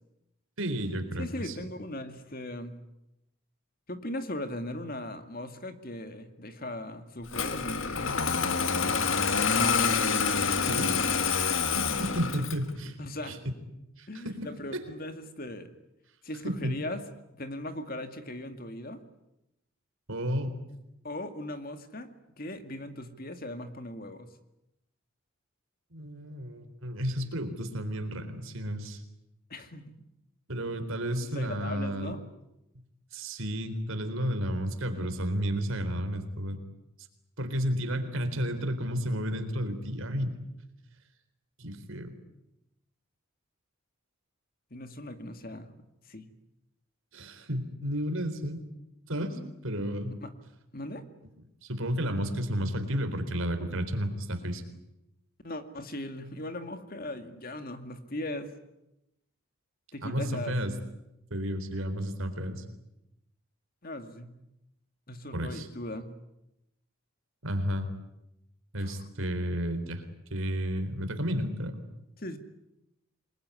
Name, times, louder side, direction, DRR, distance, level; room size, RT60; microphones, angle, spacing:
voice 1, 0.6-1.5 10.6-11.0 11.7-13.4 14.0-14.8 16.4-16.8 20.1-20.5 25.9-29.0 30.5-32.2 33.1-36.6 37.4-40.3 41.6-42.1 47.1-48.6 49.1-50.2 51.6-54.6 60.0-60.7 61.3-62.6 65.3-65.7 67.4-67.9 68.7-70.0 70.3-71.8, equal, 65° right, 8 dB, 3.9 m, -32 dB
voice 2, 1.2-2.8 3.9-8.0 8.8-9.2 13.0-13.4 14.1-15.7 16.2-17.0 17.3-19.0 21.0-24.3 29.5-29.9 31.2-32.2 44.7-45.7 46.1-46.3 50.2-50.3 50.7-51.0 55.4-58.5 59.9-60.5 63.8-64.3 65.1-66.1 68.7-69.1 72.2-72.4, left 1 dB, 40° left, 8 dB, 2.1 m, -39 dB
Engine starting, 7.3-12.7, left 5 dB, 60° left, 1.7 m, -27 dB
27.5 x 21.0 x 9.8 m, 0.89 s
head